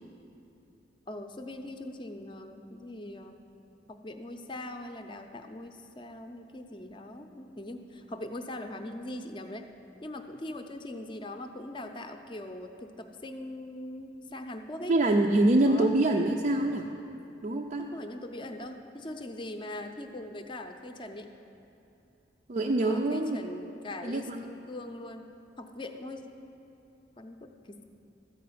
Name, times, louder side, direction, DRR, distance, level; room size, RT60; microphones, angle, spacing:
voice 1, 1.1-3.4 3.9-9.7 10.0-15.0 15.7-15.9 17.8-21.3 22.8-25.3 25.6-26.3 27.2-27.8, left 1 dB, 25° left, 6 dB, 0.6 m, -41 dB
voice 2, 14.9-16.9 17.4-17.9 22.5-23.4 24.0-24.5, right 2 dB, 40° right, 1 dB, 0.4 m, -25 dB
13.5 x 4.8 x 8.5 m, 2.9 s
head